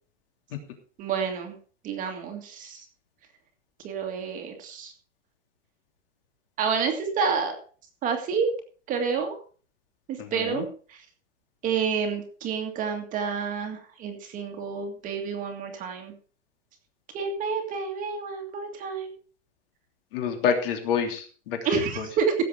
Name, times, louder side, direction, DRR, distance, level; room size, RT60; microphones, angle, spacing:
voice 1, 1.0-1.6 1.8-2.8 3.8-4.9 6.6-7.6 8.0-8.5 8.9-9.4 10.3-11.0 11.6-16.1 17.1-19.1 21.6-22.3, right 6 dB, 20° right, 4 dB, 2.0 m, -29 dB
voice 2, 10.2-10.6 20.1-21.6 22.0-22.1, left 7 dB, 50° left, 4 dB, 3.1 m, -27 dB
16.5 x 7.6 x 4.9 m, 0.40 s
supercardioid pair, 160°, 35 cm